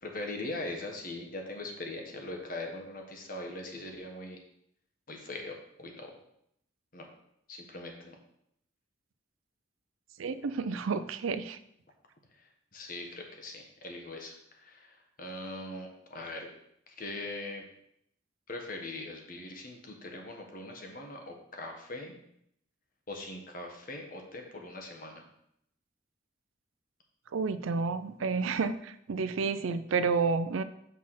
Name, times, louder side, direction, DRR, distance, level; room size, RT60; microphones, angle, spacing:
voice 1, 0.0-4.4 5.1-6.1 6.9-7.1 7.5-8.2 12.4-12.5 12.7-16.5 16.9-17.6 18.5-22.2 23.1-25.2, left 2 dB, 45° left, 2 dB, 1.1 m, -41 dB
voice 2, 10.2-11.6 27.3-30.6, right 4 dB, 80° right, 12 dB, 0.4 m, -30 dB
5.7 x 4.2 x 6.2 m, 0.75 s
head